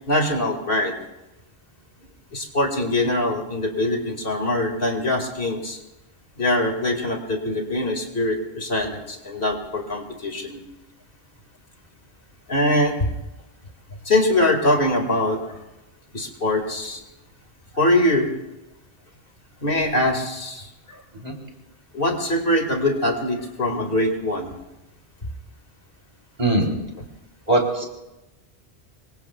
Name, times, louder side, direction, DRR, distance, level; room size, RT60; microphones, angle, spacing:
voice 1, 0.1-0.9 2.3-5.8 6.4-10.6 12.5-13.1 14.1-15.6 16.1-17.0 17.7-18.3 19.6-21.0 21.9-24.6, left 1 dB, 60° left, 3 dB, 2.2 m, -23 dB
voice 2, 27.5-27.9, right 2 dB, 40° right, -1 dB, 3.5 m, -20 dB
26.0 x 23.0 x 2.3 m, 0.97 s
omnidirectional pair, 1.0 m